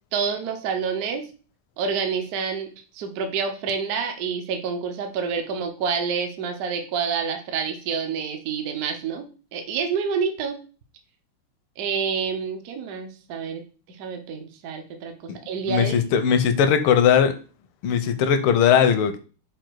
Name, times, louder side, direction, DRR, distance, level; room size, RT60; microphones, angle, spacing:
voice 1, 0.1-1.2 1.8-2.7 2.9-9.3 9.5-10.6 11.8-16.0, right 6 dB, 70° right, 5 dB, 0.9 m, -28 dB
voice 2, 15.7-17.3 17.8-19.2, left 8 dB, 80° left, 9 dB, 1.4 m, -19 dB
5.1 x 2.3 x 4.5 m, 0.36 s
omnidirectional pair, 2.4 m